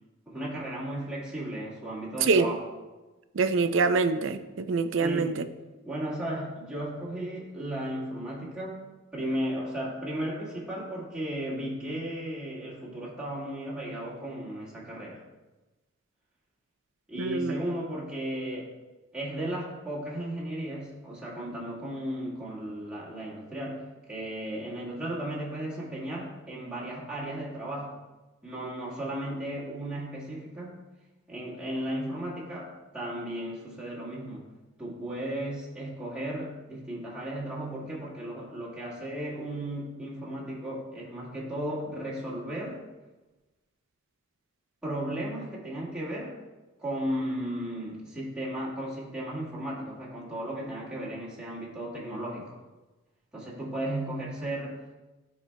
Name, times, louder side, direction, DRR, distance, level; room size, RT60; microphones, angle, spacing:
voice 1, 0.2-2.6 5.0-8.8 9.1-15.2 17.1-18.7 19.1-28.0 28.4-30.8 31.3-34.5 34.8-42.8 44.8-46.4 46.8-52.6 53.3-54.8, right 1 dB, 5° right, -9 dB, 1.6 m, -35 dB
voice 2, 3.4-5.4 17.2-17.5, right 4 dB, 60° right, 10 dB, 0.4 m, -25 dB
13.0 x 4.3 x 2.2 m, 1.2 s
head